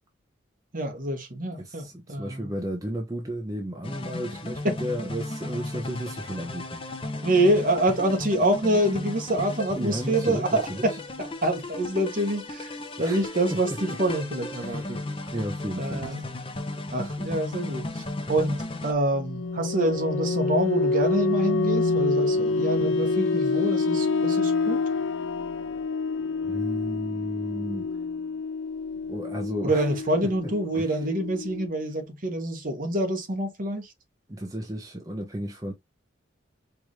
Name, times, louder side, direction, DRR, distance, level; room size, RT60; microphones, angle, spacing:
voice 1, 0.7-2.5 4.6-4.7 7.2-12.7 13.0-15.0 15.8-16.3 16.9-24.8 29.6-33.9, right 1 dB, 45° right, 1.1 m, -26 dB
voice 2, 1.6-6.8 9.8-11.0 13.0-13.6 14.6-15.0 15.3-16.3 26.4-27.9 29.1-29.9 30.7-31.1 34.3-35.7, right 1 dB, 20° right, 0.6 m, -34 dB
sound 1, 3.8-18.9, left 2 dB, 30° left, 0.6 m, -35 dB
sound 2, 19.1-31.7, left 3 dB, 85° left, 0.5 m, -27 dB
4.7 x 2.5 x 3.1 m
head